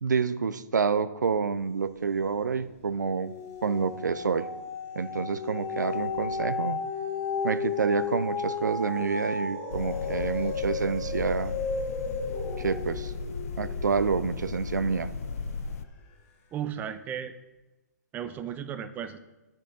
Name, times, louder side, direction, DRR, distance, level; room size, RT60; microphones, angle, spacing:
voice 1, 0.0-3.3 3.6-4.5 5.0-6.8 7.4-11.5 12.6-13.1 13.6-15.1, right 5 dB, 80° right, 13 dB, 0.5 m, -28 dB
sound 1, 2.1-2.6 3.0-15.4 16.0-16.1, left 4 dB, 35° left, 2.3 m, -34 dB
sound 2, 9.7-15.8, left 4 dB, 55° left, 0.5 m, -35 dB
voice 2, 16.5-17.3 18.1-19.2, right 9 dB, 20° right, 9 dB, 0.5 m, -35 dB
9.7 x 6.4 x 4.0 m, 1.1 s
figure-of-eight pair, 125°, 10 cm